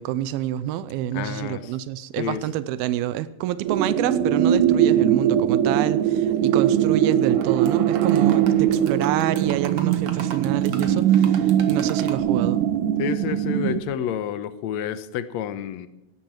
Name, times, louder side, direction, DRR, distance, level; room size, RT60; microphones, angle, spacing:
voice 1, 0.0-12.6, right 13 dB, 90° right, 15 dB, 2.6 m, -27 dB
voice 2, 1.1-1.8 2.2-2.4 13.0-15.9, left 9 dB, 75° left, 13 dB, 1.6 m, -29 dB
sound 1, 3.6-13.8, right 10 dB, 70° right, 2.2 m, -21 dB
sound 2, 7.1-7.7 8.0-12.2, right 6 dB, 50° right, 2.1 m, -38 dB
18.0 x 13.0 x 4.6 m, 0.93 s
omnidirectional pair, 4.3 m